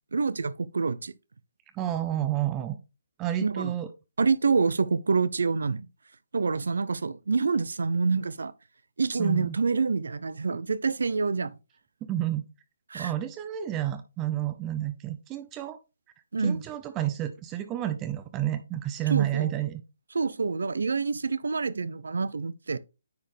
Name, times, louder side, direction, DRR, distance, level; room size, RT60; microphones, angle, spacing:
voice 1, 0.1-1.1 3.4-3.7 4.2-5.9 6.3-8.5 9.0-11.6 12.9-13.1 16.3-16.6 19.1-19.5 20.1-22.8, right 4 dB, 85° right, 0.5 m, -27 dB
voice 2, 1.7-2.8 3.2-3.9 9.2-9.6 12.0-12.5 12.9-15.8 16.4-19.8, right 12 dB, 20° right, 0.5 m, -30 dB
9.6 x 4.1 x 3.3 m
hypercardioid pair, 160°, 0 cm